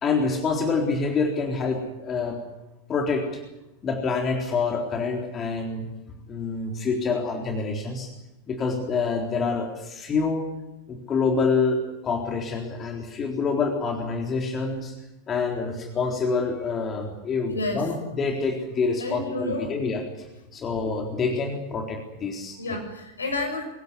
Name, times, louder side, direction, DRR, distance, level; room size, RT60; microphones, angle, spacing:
voice 1, 0.0-2.4 2.9-3.4 3.8-5.8 6.3-8.1 8.5-10.4 10.9-14.9 15.3-20.3 20.5-22.8, left 4 dB, 25° left, 2 dB, 3.8 m, -27 dB
voice 2, 17.5-17.8 19.0-19.7 22.6-23.6, left 2 dB, 75° left, 5 dB, 6.5 m, -30 dB
25.0 x 16.0 x 9.8 m, 0.97 s
figure-of-eight pair, 90°, 0 cm